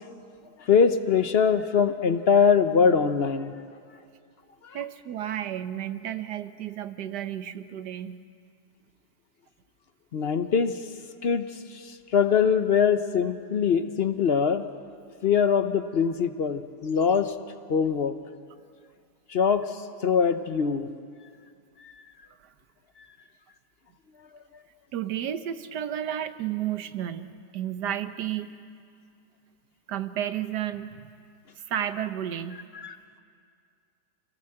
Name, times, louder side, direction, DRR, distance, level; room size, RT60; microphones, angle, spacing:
voice 1, 0.6-3.6 4.6-4.8 10.1-10.8 11.2-14.6 15.2-17.3 17.7-18.1 19.3-20.9 21.8-22.0 23.0-23.1 32.7-33.0, left 6 dB, 50° left, 10 dB, 0.8 m, -23 dB
voice 2, 4.7-8.2 24.9-28.6 29.9-31.1 31.7-32.6, right 10 dB, 75° right, 11 dB, 1.5 m, -32 dB
28.5 x 17.0 x 7.7 m, 2.3 s
omnidirectional pair, 1.8 m